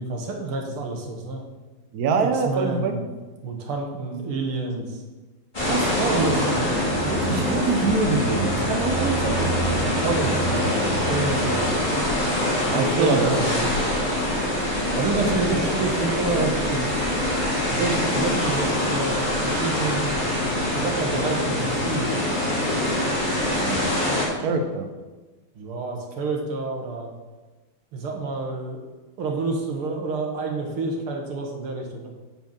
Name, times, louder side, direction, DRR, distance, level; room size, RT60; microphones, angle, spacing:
voice 1, 0.0-1.4 2.2-3.0 3.4-4.9 6.1-6.7 9.8-10.7 11.1-11.9 12.7-13.8 15.0-16.9 17.7-20.2 20.7-22.1 25.6-27.1 27.9-28.8 29.2-32.1, right 3 dB, 85° right, 2 dB, 2.3 m, -28 dB
voice 2, 1.9-2.9 5.6-6.3 7.1-9.5 12.6-13.4 23.6-24.0 24.4-24.8, right 4 dB, 60° right, 6 dB, 1.1 m, -25 dB
sound 1, 5.5-24.3, left 1 dB, 20° left, 2.5 m, -24 dB
sound 2, 6.1-12.1, right 7 dB, 5° right, 0.6 m, -33 dB
9.1 x 4.5 x 7.1 m, 1.2 s
omnidirectional pair, 2.3 m